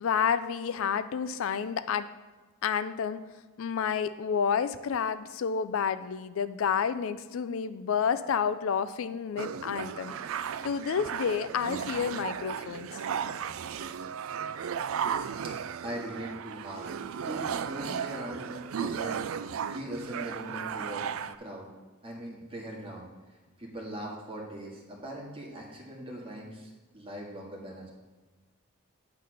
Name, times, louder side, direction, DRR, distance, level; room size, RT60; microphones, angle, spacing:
voice 1, 0.0-2.1 2.6-3.2 3.6-10.1 10.6-12.9, left 7 dB, 70° left, 13 dB, 0.4 m, -30 dB
sound 1, 9.4-21.4, right 7 dB, 70° right, 0.4 m, -35 dB
voice 2, 15.8-16.9 17.2-19.2 19.7-21.0 21.4-21.7 22.0-23.1 23.6-27.9, right 1 dB, 25° right, -2 dB, 2.0 m, -40 dB
9.3 x 4.0 x 6.5 m, 1.3 s
head